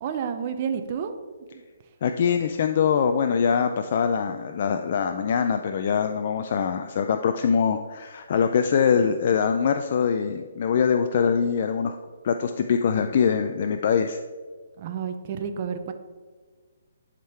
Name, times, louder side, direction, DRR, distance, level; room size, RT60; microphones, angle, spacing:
voice 1, 0.0-1.1 14.8-15.9, right 7 dB, 35° right, 7 dB, 0.7 m, -30 dB
voice 2, 2.0-12.0 12.2-14.2, left 6 dB, 45° left, 7 dB, 0.4 m, -23 dB
11.0 x 3.7 x 4.3 m, 1.5 s
hypercardioid pair, 160°, 0 cm